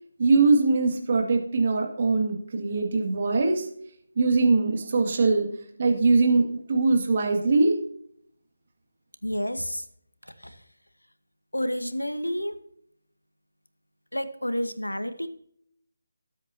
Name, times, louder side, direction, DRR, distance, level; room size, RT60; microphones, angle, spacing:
voice 1, 0.2-3.6 4.2-5.5 5.8-7.7, right 3 dB, 40° right, 2 dB, 2.2 m, -22 dB
voice 2, 9.2-9.8 11.5-12.6 14.1-15.3, equal, 85° left, 11 dB, 1.2 m, -29 dB
18.5 x 8.0 x 2.8 m, 0.66 s
figure-of-eight pair, 155°, 0 cm